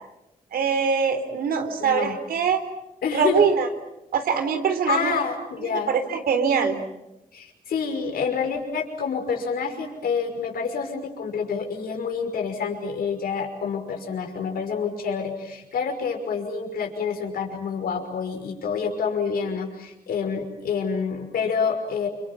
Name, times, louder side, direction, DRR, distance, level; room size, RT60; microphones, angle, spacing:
voice 1, 0.5-2.6 3.1-3.7 4.1-5.2 5.6-6.8, right 6 dB, 90° right, 8 dB, 3.8 m, -23 dB
voice 2, 1.8-2.2 3.0-3.4 4.9-5.9 7.3-22.1, left 6 dB, 85° left, 4 dB, 5.7 m, -28 dB
29.5 x 26.5 x 7.4 m, 0.92 s
cardioid pair, 90°, 15 cm